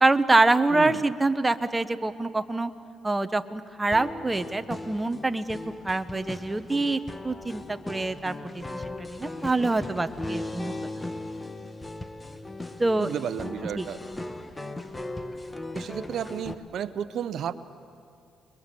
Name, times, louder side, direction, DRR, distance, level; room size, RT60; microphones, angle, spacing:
voice 1, 0.0-2.7 3.0-10.7 12.8-13.1 13.8-13.9, right 2 dB, 15° right, 10 dB, 0.9 m, -25 dB
voice 2, 0.7-1.1 13.0-14.0 15.7-17.5, right 9 dB, 70° right, 13 dB, 0.7 m, -32 dB
sound 1, 3.9-16.5, left 2 dB, 15° left, 1.3 m, -38 dB
29.5 x 22.0 x 6.9 m, 2.4 s
cardioid pair, 90°, 0 cm